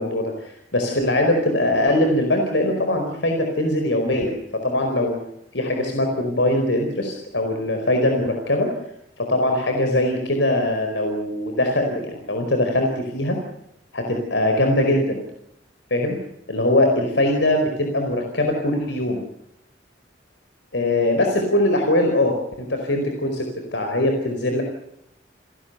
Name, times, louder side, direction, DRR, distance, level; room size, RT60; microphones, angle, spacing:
voice 1, 0.0-5.2 5.5-8.7 9.2-13.4 13.9-15.2 15.9-16.2 16.5-19.2 20.7-24.6, left 1 dB, 90° left, 4 dB, 4.7 m, -21 dB
30.0 x 18.0 x 6.8 m, 0.80 s
head